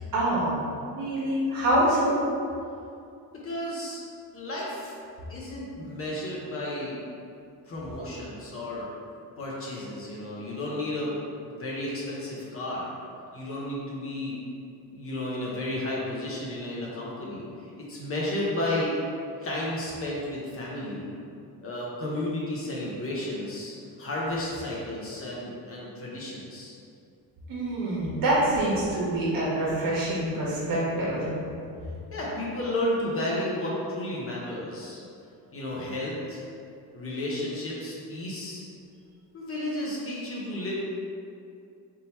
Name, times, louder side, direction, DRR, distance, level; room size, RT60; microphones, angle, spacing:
voice 1, 0.1-0.6 0.9-2.1 27.5-31.2, right 1 dB, 60° right, -6 dB, 1.3 m, -25 dB
voice 2, 3.4-4.0 4.3-4.9 5.3-7.0 7.7-8.9 9.4-11.2 11.5-12.9 13.3-14.4 14.9-19.0 19.4-21.1 21.6-26.8 32.1-35.0 35.5-36.4 36.9-38.6 39.3-40.7, left 1 dB, 35° left, -5 dB, 0.7 m, -32 dB
3.7 x 2.8 x 4.2 m, 2.5 s
cardioid pair, 165°, 39 cm